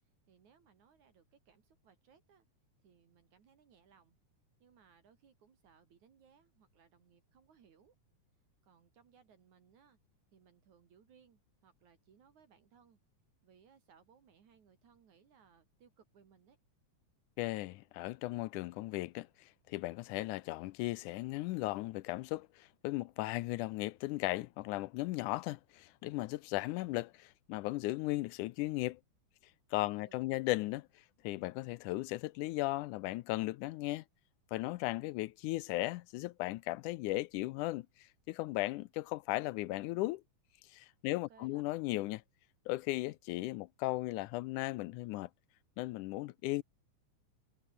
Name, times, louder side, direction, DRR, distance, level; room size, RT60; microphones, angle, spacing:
voice 1, 0.3-2.5 2.8-4.2 4.6-8.0 8.6-10.0 10.3-13.0 13.4-16.6 29.9-30.4 41.1-41.6, right 7 dB, 65° right, 3.8 m, -65 dB
voice 2, 17.4-29.0 29.7-30.9 31.2-34.0 34.5-40.2 40.7-42.2 42.7-45.3 45.8-46.6, left 19 dB, 80° left, 2.0 m, -36 dB
omnidirectional pair, 3.6 m